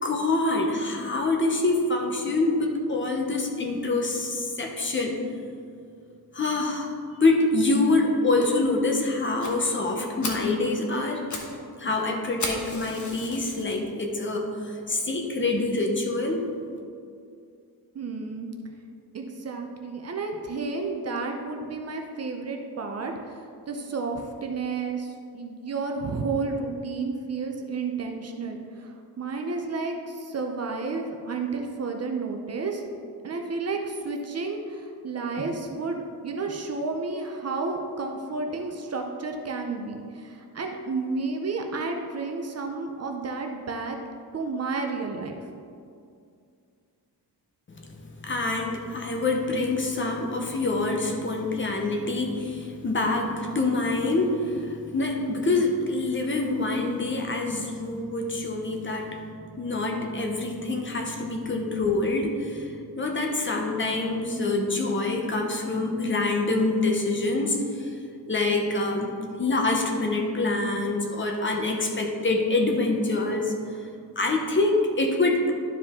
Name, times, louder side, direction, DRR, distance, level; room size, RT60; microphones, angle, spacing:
voice 1, 0.0-5.2 6.3-6.9 7.2-11.2 11.8-16.4 47.7-59.2 59.5-67.9 68.3-69.1 69.4-73.5 74.2-75.5, left 2 dB, 30° left, 2 dB, 0.8 m, -26 dB
Fire, 9.4-9.5 9.9-10.0 10.2-10.5 11.0-11.5 11.8-11.9 12.4-13.7 14.3-14.4 15.0-15.1 15.3-15.4 15.8-15.9, left 2 dB, 45° left, 1.1 m, -34 dB
voice 2, 17.9-18.5 19.1-32.8 33.2-44.0 44.3-45.4, right 4 dB, 40° right, 3 dB, 0.6 m, -31 dB
11.5 x 4.9 x 3.6 m, 2.4 s
wide cardioid pair, 155°, 40 cm